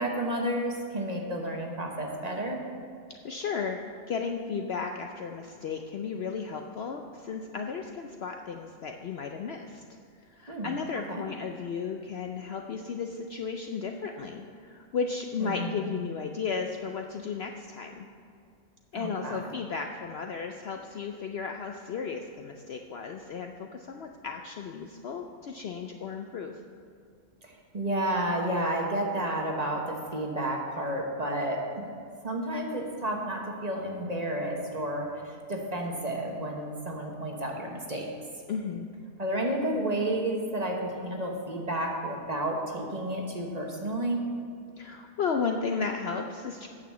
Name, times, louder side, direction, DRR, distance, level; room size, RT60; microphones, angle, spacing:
voice 1, 0.0-2.6 10.5-10.7 11.1-11.2 15.4-15.9 18.9-19.5 27.4-31.9 32.2-38.1 39.2-44.2, right 1 dB, 30° right, 0 dB, 1.1 m, -31 dB
voice 2, 3.2-9.8 10.2-18.1 18.9-26.6 38.5-38.9 44.8-46.7, left 5 dB, 60° left, 4 dB, 0.7 m, -34 dB
9.1 x 6.8 x 7.2 m, 2.3 s
omnidirectional pair, 1.4 m